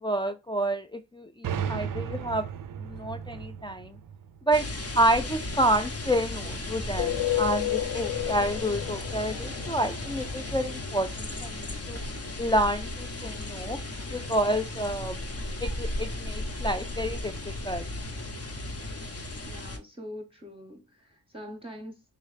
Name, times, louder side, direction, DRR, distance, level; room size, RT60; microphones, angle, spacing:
voice 1, 0.0-2.5 2.8-4.0 4.5-4.7 5.0-12.0 12.4-13.8 14.1-15.2 15.6-17.8, right 1 dB, 10° left, 0.4 m, -29 dB
sound 1, 1.4-5.1, right 8 dB, 50° right, 0.5 m, -35 dB
sound 2, 4.5-19.8, left 2 dB, 35° left, 0.8 m, -35 dB
sound 3, 7.0-10.5, left 13 dB, 80° left, 0.6 m, -31 dB
voice 2, 19.4-22.0, equal, 15° right, 0.9 m, -43 dB
3.7 x 2.9 x 3.2 m
cardioid pair, 55°, 42 cm